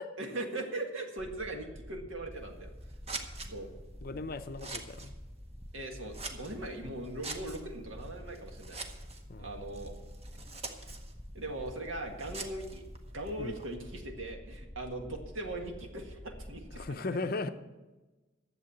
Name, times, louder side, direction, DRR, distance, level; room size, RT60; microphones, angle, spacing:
voice 1, 0.2-2.7 3.1-3.7 5.7-8.8 9.4-9.9 11.3-12.8 13.1-17.0, right 2 dB, 75° right, 3 dB, 1.7 m, -40 dB
sound 1, 1.2-16.9, equal, ahead, 0.4 m, -48 dB
Scissors, 2.3-13.7, right 3 dB, 30° right, 0.9 m, -47 dB
voice 2, 4.0-5.1 9.3-9.5 13.4-13.6 16.7-17.5, left 3 dB, 45° left, 9 dB, 0.6 m, -37 dB
10.5 x 7.4 x 8.4 m, 1.2 s
head